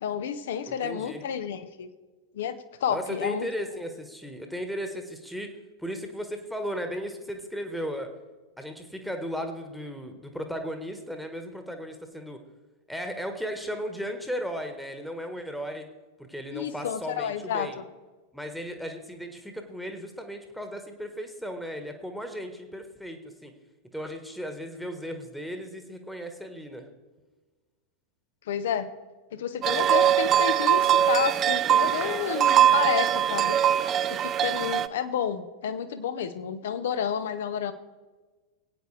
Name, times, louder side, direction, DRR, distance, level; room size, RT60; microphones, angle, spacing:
voice 1, 0.0-1.9 2.3-2.5 2.8-3.5 16.5-17.8 28.5-28.9 29.3-33.6 34.4-37.7, left 8 dB, 60° left, 11 dB, 0.9 m, -30 dB
voice 2, 0.7-1.2 2.9-5.5 5.8-8.1 8.6-12.4 12.9-15.9 16.2-17.8 18.3-23.5 23.9-26.9, equal, ahead, 5 dB, 1.4 m, -36 dB
sound 1, 29.6-34.9, right 10 dB, 30° right, 0.5 m, -22 dB
20.0 x 8.9 x 3.3 m, 1.3 s
figure-of-eight pair, 90°, 0 cm